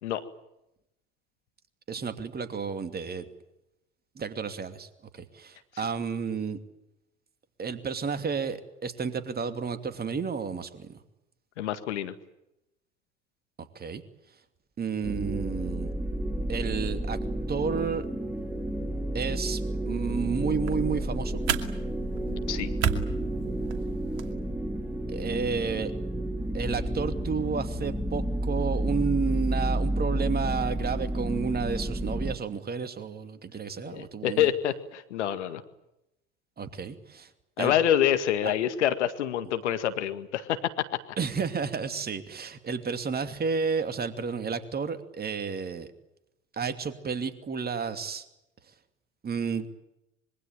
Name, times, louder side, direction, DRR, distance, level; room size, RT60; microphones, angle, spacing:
voice 1, 1.9-3.2 4.2-4.9 5.1-6.6 7.6-11.0 13.7-14.0 14.8-15.9 16.5-17.2 17.5-18.1 19.1-21.4 25.1-25.9 26.5-34.5 36.6-37.3 37.6-37.7 38.4-38.5 41.2-45.9 46.5-48.2 49.2-49.7, right 5 dB, 25° right, 10 dB, 2.8 m, -31 dB
voice 2, 11.6-12.1 22.3-22.7 33.8-35.6 37.6-40.7, left 10 dB, 70° left, 11 dB, 2.0 m, -27 dB
sound 1, 15.0-32.3, right 1 dB, 5° right, 2.9 m, -31 dB
sound 2, 20.4-24.3, right 9 dB, 60° right, 2.5 m, -34 dB
25.5 x 23.0 x 9.0 m, 0.88 s
figure-of-eight pair, 75°, 36 cm